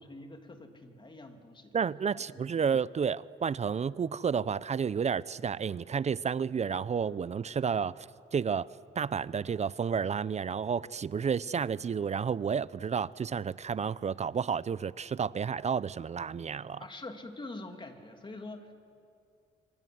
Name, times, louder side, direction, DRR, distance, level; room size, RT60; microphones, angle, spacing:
voice 1, 0.0-1.7 2.1-2.4 16.8-18.7, left 2 dB, 25° left, 5 dB, 2.9 m, -45 dB
voice 2, 1.7-8.7 9.0-16.8, right 6 dB, 35° right, 19 dB, 0.5 m, -31 dB
27.5 x 25.0 x 7.9 m, 2.5 s
cardioid pair, 90°, 20 cm